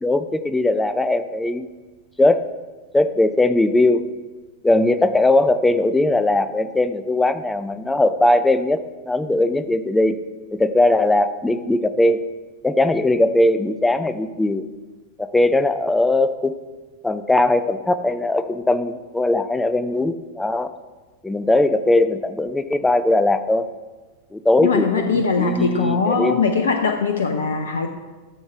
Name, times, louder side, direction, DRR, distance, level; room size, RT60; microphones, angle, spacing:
voice 1, 0.0-1.6 2.2-2.5 2.9-4.0 4.6-8.8 9.1-10.2 10.5-12.2 12.6-14.6 15.2-16.5 17.0-20.7 21.2-23.7 24.3-26.4, left 2 dB, 10° left, 11 dB, 0.5 m, -19 dB
voice 2, 24.6-27.9, left 5 dB, 65° left, 6 dB, 0.7 m, -21 dB
13.0 x 7.1 x 3.5 m, 1.3 s
figure-of-eight pair, 90°, 0 cm